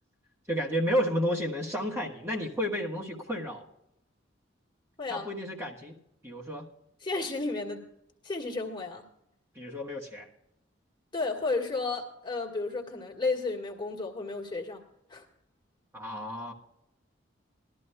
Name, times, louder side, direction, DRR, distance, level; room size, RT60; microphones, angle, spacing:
voice 1, 0.5-3.6 5.1-6.0 6.2-6.7 9.5-10.3 15.9-16.5, equal, 15° right, -3 dB, 1.3 m, -31 dB
voice 2, 5.0-5.3 7.0-7.8 8.2-9.0 11.1-14.8 15.1-15.2, left 3 dB, 25° left, -1 dB, 1.6 m, -32 dB
19.5 x 12.5 x 2.2 m, 0.81 s
head